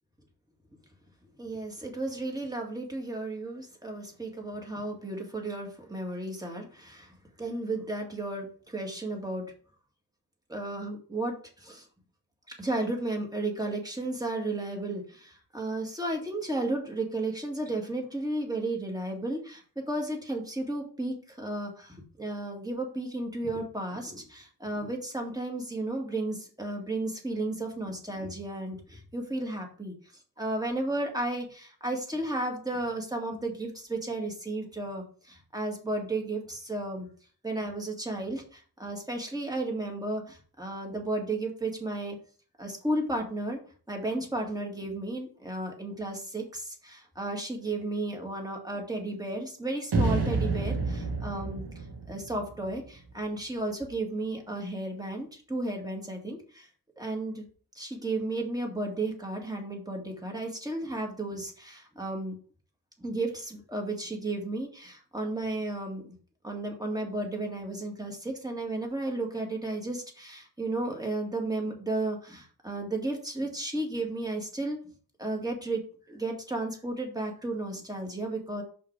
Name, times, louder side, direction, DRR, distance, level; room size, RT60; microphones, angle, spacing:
voice 1, 1.4-9.5 10.5-11.9 12.5-29.9 30.4-37.1 37.4-42.2 42.6-43.6 43.9-56.7 57.0-57.4 57.7-62.4 63.0-66.1 66.4-74.8 75.2-75.8 76.1-78.6, right 2 dB, 10° right, 1 dB, 2.1 m, -33 dB
sound 1, 49.9-53.1, right 3 dB, 85° right, 2.1 m, -29 dB
5.6 x 4.7 x 4.7 m, 0.42 s
cardioid pair, 75°, 39 cm